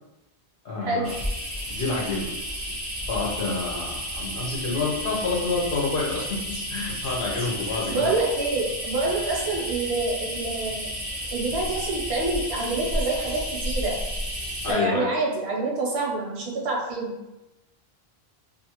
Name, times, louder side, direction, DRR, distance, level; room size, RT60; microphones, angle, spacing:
voice 1, 0.6-1.2 1.7-2.3 3.1-6.4 6.7-8.1 14.6-15.1, left 3 dB, 65° left, -3 dB, 0.9 m, -28 dB
sound 1, 1.0-14.7, equal, 20° right, 0.4 m, -32 dB
voice 2, 7.9-10.9 11.3-14.0 14.7-17.1, right 2 dB, 85° right, -2 dB, 1.0 m, -27 dB
2.5 x 2.4 x 2.8 m, 0.98 s
omnidirectional pair, 1.1 m